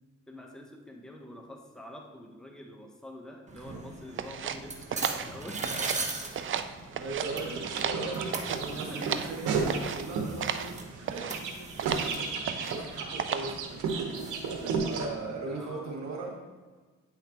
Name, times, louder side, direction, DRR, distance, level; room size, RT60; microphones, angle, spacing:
voice 1, 0.0-6.0 7.5-7.7 8.7-9.3 11.0-11.1 15.5-16.0, left 1 dB, ahead, 1 dB, 0.9 m, -46 dB
sound 1, 3.5-15.0, right 3 dB, 25° right, 1.0 m, -41 dB
sound 2, 4.2-6.1 6.3-7.3 7.6-9.4 9.7-10.0 10.4-10.7 11.0-11.4 11.8-12.1 12.4-12.9 13.2-13.6, right 8 dB, 40° right, 0.5 m, -34 dB
voice 2, 6.9-12.3 12.5-16.3, right 3 dB, 60° right, -2 dB, 2.0 m, -39 dB
sound 3, 7.2-10.3 10.7-15.1, right 5 dB, 80° right, 1.1 m, -33 dB
9.0 x 5.8 x 3.0 m, 1.3 s
cardioid pair, 90°, 30 cm